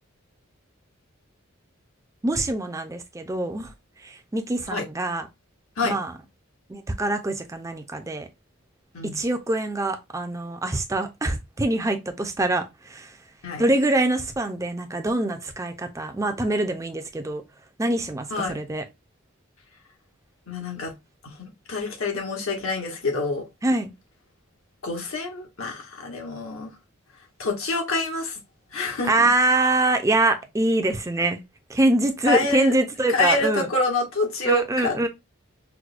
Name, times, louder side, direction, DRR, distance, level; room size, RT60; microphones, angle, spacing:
voice 1, 2.2-3.7 4.0-5.3 5.8-6.1 6.7-8.3 9.0-13.2 13.6-17.4 17.8-18.9 23.6-23.9 29.1-31.4 31.7-33.7 34.5-35.1, right 2 dB, 15° right, 0.4 m, -24 dB
voice 2, 20.5-20.9 21.2-23.4 24.8-26.7 27.4-28.4 28.7-29.3 32.3-32.7 33.1-35.0, left 3 dB, 80° left, 1.2 m, -26 dB
4.7 x 2.1 x 2.4 m
head